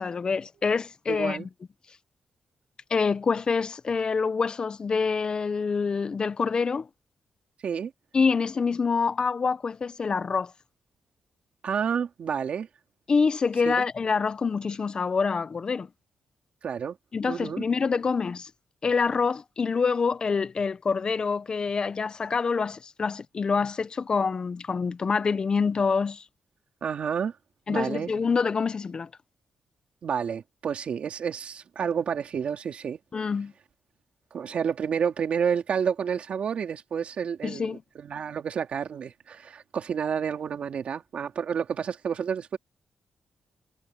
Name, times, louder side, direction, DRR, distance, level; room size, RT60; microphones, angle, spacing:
voice 1, 0.0-1.5 2.9-6.9 8.1-10.5 13.1-15.9 17.1-18.5 18.8-26.2 27.7-29.1 33.1-33.5 37.4-37.8, left 5 dB, 40° left, 0.8 m, -26 dB
voice 2, 1.1-1.5 7.6-7.9 11.6-12.7 13.6-13.8 16.6-17.0 17.3-17.6 26.8-27.3 27.7-28.1 30.0-33.0 34.3-42.6, right 7 dB, 60° right, 3.0 m, -30 dB
cardioid pair, 115°, 2 cm